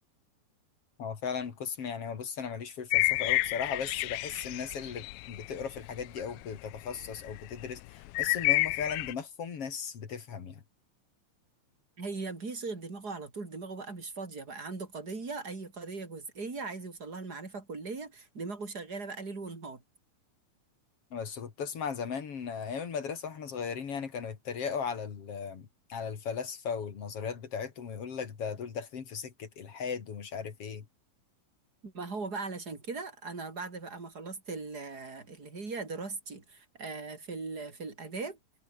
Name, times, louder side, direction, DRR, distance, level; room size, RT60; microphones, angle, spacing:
voice 1, 1.0-10.6 21.1-30.9, left 6 dB, 45° left, 3.0 m, -37 dB
sound 1, 2.9-6.4 6.7-9.1, left 21 dB, 85° left, 2.5 m, -30 dB
voice 2, 12.0-19.8 31.8-38.4, right 4 dB, 25° right, 4.7 m, -39 dB
omnidirectional pair, 4.3 m